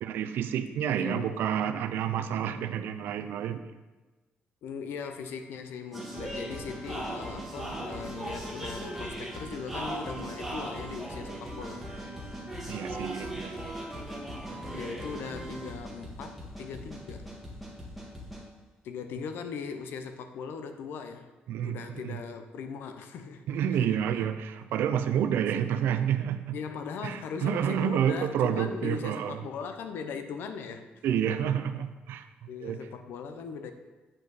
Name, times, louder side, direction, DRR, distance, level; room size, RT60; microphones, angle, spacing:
voice 1, 0.0-3.6 12.7-13.6 21.5-22.2 23.5-26.6 27.0-29.4 31.0-32.3 32.6-32.8, right 9 dB, 90° right, 10 dB, 0.5 m, -29 dB
voice 2, 0.9-1.4 4.6-11.8 14.7-17.3 18.8-21.3 21.6-23.4 23.8-24.0 26.5-31.2 32.5-33.7, left 6 dB, 80° left, 8 dB, 0.7 m, -39 dB
sound 1, 5.9-18.4, right 1 dB, ahead, 1.7 m, -38 dB
8.7 x 5.3 x 4.1 m, 1.2 s
cardioid pair, 150°, 4 cm